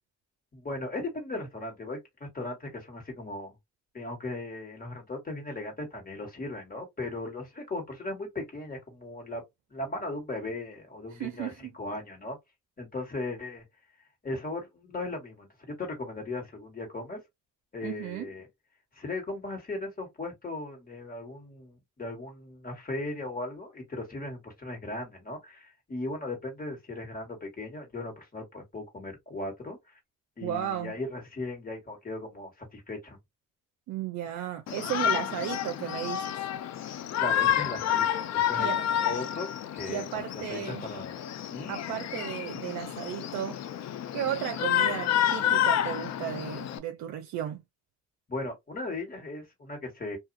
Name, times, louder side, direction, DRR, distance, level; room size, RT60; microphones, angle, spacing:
voice 1, 0.5-3.5 3.9-9.4 9.7-12.4 12.8-13.6 14.2-17.2 17.7-18.5 19.0-30.0 30.4-33.2 37.2-41.2 41.5-41.7 48.3-50.2, left 2 dB, 30° left, 1.8 m, -37 dB
voice 2, 11.1-11.7 17.8-18.3 30.4-31.0 33.9-36.3 38.6-38.8 39.9-40.9 41.7-43.6 44.1-47.6, right 11 dB, 70° right, 0.5 m, -34 dB
Shout, 34.7-46.8, left 10 dB, 60° left, 0.5 m, -29 dB
2.7 x 2.4 x 2.6 m
cardioid pair, 90°, 30 cm